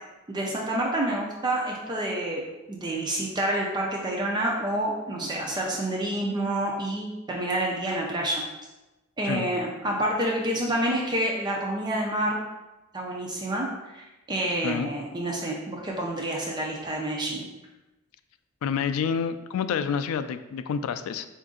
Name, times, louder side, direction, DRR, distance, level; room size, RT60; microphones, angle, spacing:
voice 1, 0.3-2.4 2.7-8.4 9.2-12.4 12.9-17.4, right 1 dB, 20° right, -1 dB, 0.5 m, -28 dB
voice 2, 18.6-21.3, left 6 dB, 80° left, 12 dB, 0.3 m, -28 dB
4.7 x 2.6 x 3.6 m, 1.0 s
head